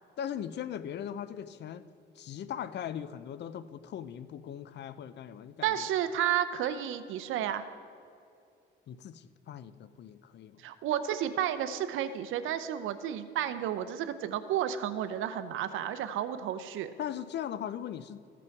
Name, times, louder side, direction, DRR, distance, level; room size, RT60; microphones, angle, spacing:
voice 1, 0.2-1.8 2.2-5.9 8.9-10.6 17.0-18.2, left 9 dB, 60° left, 14 dB, 0.5 m, -39 dB
voice 2, 5.6-7.7 10.6-16.9, right 10 dB, 85° right, 11 dB, 0.6 m, -32 dB
14.5 x 6.0 x 4.6 m, 2.5 s
cardioid pair, 90°, 20 cm